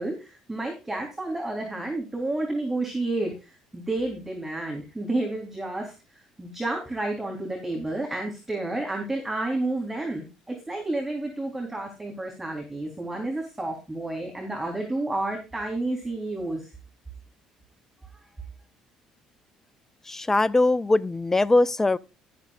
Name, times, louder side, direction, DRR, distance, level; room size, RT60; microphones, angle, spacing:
voice 1, 0.0-16.7 18.1-18.2, right 2 dB, 15° right, 3.8 m, -30 dB
voice 2, 20.1-22.0, left 2 dB, 20° left, 0.7 m, -21 dB
13.0 x 12.0 x 2.5 m
figure-of-eight pair, 55°, 2 cm